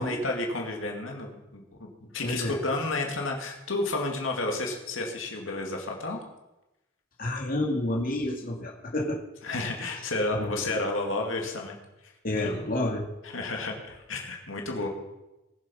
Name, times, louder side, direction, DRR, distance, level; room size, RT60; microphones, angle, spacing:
voice 1, 0.0-6.2 9.4-11.8 12.4-12.5 13.2-14.9, left 2 dB, 90° left, 1 dB, 2.4 m, -31 dB
voice 2, 2.2-2.6 7.2-9.2 9.8-9.9 10.3-10.6 12.2-13.0, left 1 dB, 45° left, -1 dB, 2.4 m, -29 dB
20.0 x 7.4 x 5.6 m, 0.97 s
head